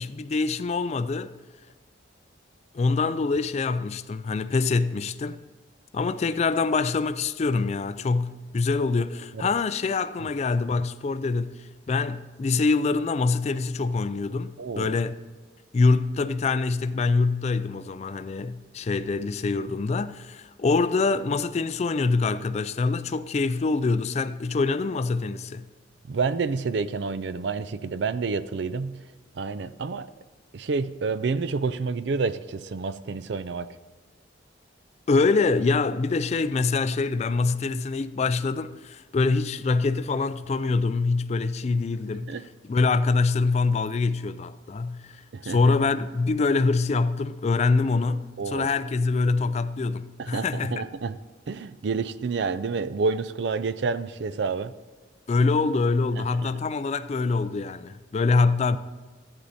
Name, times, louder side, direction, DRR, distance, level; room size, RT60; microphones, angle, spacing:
voice 1, 0.0-1.3 2.7-5.4 5.9-15.1 15.7-25.6 35.1-42.4 42.7-50.8 55.3-58.8, left 4 dB, 35° left, 0.3 m, -25 dB
voice 2, 14.6-14.9 26.1-29.0 29.4-30.1 30.5-33.7 42.3-42.4 45.3-45.7 48.4-48.7 50.2-51.2 51.5-54.7 56.2-56.5, right 4 dB, 65° right, 0.4 m, -29 dB
11.5 x 8.3 x 4.1 m
head